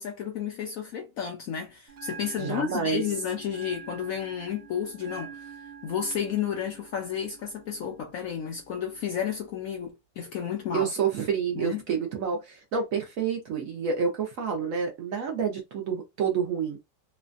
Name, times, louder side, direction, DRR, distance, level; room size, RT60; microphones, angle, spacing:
voice 1, 0.0-5.6 5.8-10.9 11.5-11.8, left 8 dB, 70° left, 0.8 m, -32 dB
Bell, 1.9-9.9, right 6 dB, 80° right, 0.5 m, -47 dB
voice 2, 2.4-3.0 10.7-16.8, right 6 dB, 65° right, 0.9 m, -28 dB
3.2 x 2.1 x 2.5 m
omnidirectional pair, 1.9 m